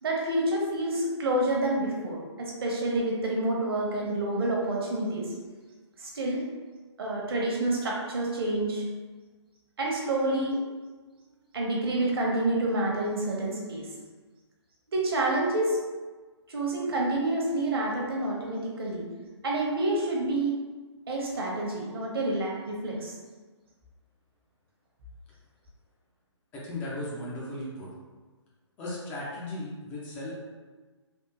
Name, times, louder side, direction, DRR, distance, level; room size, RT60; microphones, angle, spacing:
voice 1, 0.0-5.3 6.0-6.5 7.0-8.8 9.8-10.6 11.5-13.9 14.9-15.8 16.5-19.1 19.4-20.5 21.1-23.1, right 1 dB, 55° right, -3 dB, 0.9 m, -28 dB
voice 2, 26.5-27.9 28.8-30.3, left 1 dB, 10° left, -6 dB, 0.4 m, -36 dB
3.5 x 2.4 x 2.9 m, 1.3 s
figure-of-eight pair, 140°, 15 cm